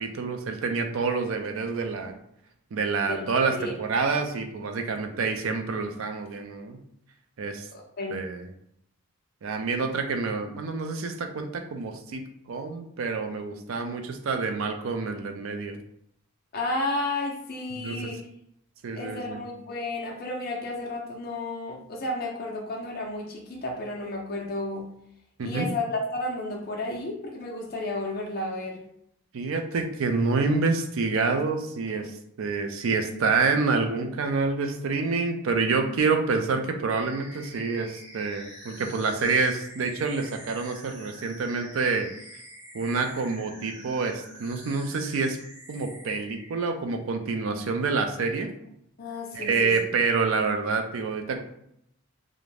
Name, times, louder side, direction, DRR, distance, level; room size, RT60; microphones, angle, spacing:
voice 1, 0.0-2.2 2.7-6.8 7.4-7.7 8.1-8.4 9.4-12.2 12.5-15.8 17.7-18.0 18.8-19.4 25.4-25.7 29.3-32.1 32.4-42.1 42.7-45.4 45.7-48.5 49.3-51.4, right 4 dB, 60° right, 6 dB, 0.4 m, -27 dB
voice 2, 7.7-8.2 16.5-18.2 18.9-24.9 25.4-28.8 49.0-49.7, left 2 dB, 40° left, -1 dB, 0.5 m, -32 dB
sound 1, 36.9-46.6, equal, 20° right, 0.7 m, -47 dB
2.5 x 2.1 x 3.2 m, 0.74 s
head